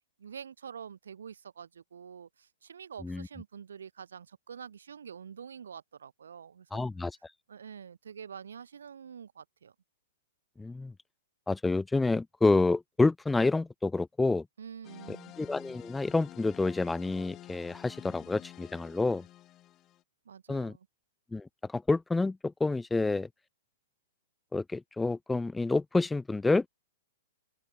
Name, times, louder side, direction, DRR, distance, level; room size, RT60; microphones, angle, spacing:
voice 1, 0.2-6.9 7.5-9.7 14.6-15.4 20.2-20.9, right 7 dB, 80° right, 2.9 m, -46 dB
voice 2, 6.7-7.1 10.6-10.9 11.5-14.4 15.1-19.2 20.5-20.7 21.3-23.3 24.5-26.7, left 3 dB, 10° left, 0.4 m, -28 dB
sound 1, 14.8-20.0, left 14 dB, 30° left, 2.3 m, -50 dB
open air
hypercardioid pair, 120°, 0 cm